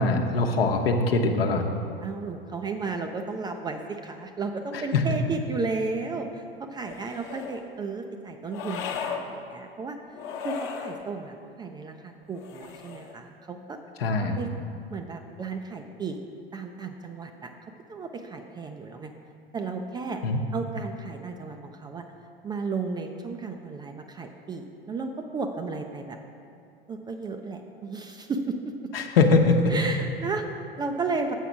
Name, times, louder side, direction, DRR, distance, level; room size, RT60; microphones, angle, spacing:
voice 1, 0.0-1.7 4.9-5.0 14.0-14.3 20.2-20.4 28.9-29.8, left 3 dB, 70° left, 4 dB, 0.9 m, -22 dB
voice 2, 2.0-10.2 10.4-13.8 14.2-14.5 14.9-16.2 16.5-17.5 17.9-19.1 19.5-20.2 20.5-22.0 22.4-26.2 26.9-28.9 29.7-31.3, right 4 dB, 15° right, 5 dB, 0.3 m, -34 dB
sound 1, 6.8-7.6 8.5-9.3 10.1-11.0 12.3-13.2, left 6 dB, 45° left, 0.9 m, -36 dB
7.3 x 5.8 x 6.0 m, 2.6 s
figure-of-eight pair, 85°, 30 cm